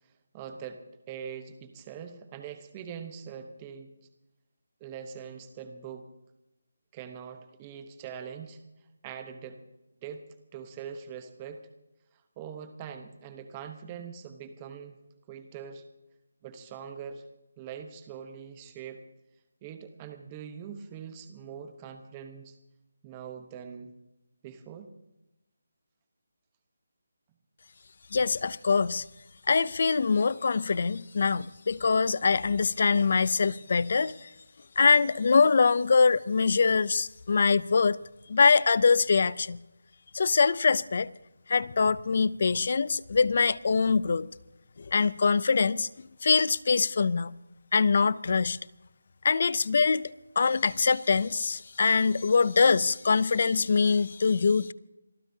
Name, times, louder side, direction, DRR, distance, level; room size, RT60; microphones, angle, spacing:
voice 1, 0.3-3.9 4.8-6.1 6.9-8.6 9.0-9.6 10.0-10.2 10.5-11.6 12.4-14.9 15.3-15.8 16.4-17.2 17.6-19.0 19.6-22.6 23.0-23.9 24.4-24.9, right 7 dB, 10° right, 0.8 m, -42 dB
voice 2, 28.1-29.1 29.5-34.3 34.8-38.0 38.3-39.6 40.1-41.1 41.5-44.3 44.8-45.9 46.2-47.3 47.7-48.6 49.2-54.7, left 5 dB, 35° left, 0.4 m, -24 dB
27.5 x 14.0 x 2.7 m
hypercardioid pair, 180°, 0 cm